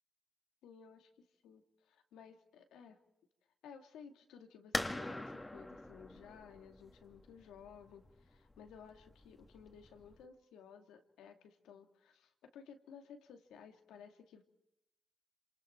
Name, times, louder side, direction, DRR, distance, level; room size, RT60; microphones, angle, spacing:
voice 1, 0.6-3.0 3.6-14.4, left 7 dB, 90° left, 4 dB, 2.4 m, -56 dB
sound 1, 4.7-10.2, left 1 dB, 20° left, 2.4 m, -44 dB
27.0 x 27.0 x 4.6 m, 0.87 s
supercardioid pair, 50°, 0 cm